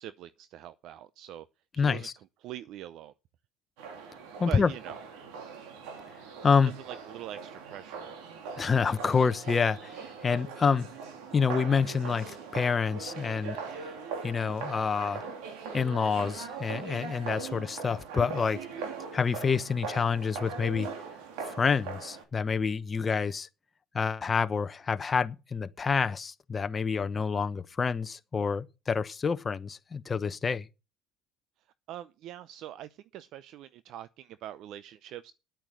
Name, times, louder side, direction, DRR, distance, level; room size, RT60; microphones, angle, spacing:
voice 1, 0.0-1.5 1.7-3.1 4.4-5.0 6.8-8.1 31.9-35.3, right 12 dB, 60° right, 0.6 m, -43 dB
voice 2, 1.8-2.1 4.4-4.7 6.4-6.7 8.6-10.9 11.3-13.9 14.2-15.2 15.7-18.6 19.1-20.9 21.5-23.5 23.9-30.7, left 5 dB, 25° left, 1.0 m, -28 dB
sound 1, 3.8-22.2, right 5 dB, 85° right, 3.1 m, -41 dB
10.0 x 9.0 x 6.4 m
cardioid pair, 110°, 0 cm